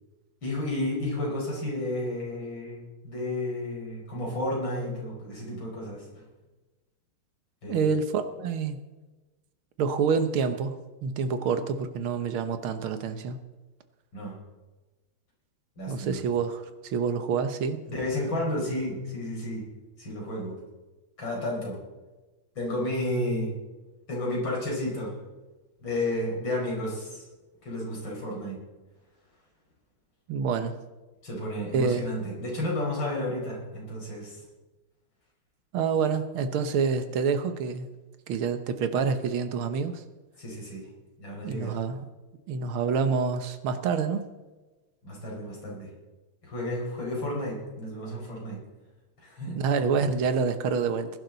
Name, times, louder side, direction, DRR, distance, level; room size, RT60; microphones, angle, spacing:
voice 1, 0.4-6.2 7.6-7.9 14.1-14.4 15.8-16.2 17.9-19.7 20.0-20.6 21.2-21.8 22.6-23.5 24.1-25.2 25.8-27.2 27.6-28.6 31.2-34.4 40.4-40.8 41.2-41.7 45.0-45.9 46.4-48.6 49.2-49.6, left 1 dB, 60° left, -3 dB, 5.5 m, -32 dB
voice 2, 7.7-8.8 9.8-13.4 15.9-17.8 30.3-30.7 31.7-32.1 35.7-37.9 38.3-40.0 41.4-42.1 42.5-44.3 49.5-51.1, right 5 dB, 75° right, 9 dB, 1.9 m, -27 dB
20.0 x 11.0 x 4.0 m, 1.2 s
omnidirectional pair, 2.4 m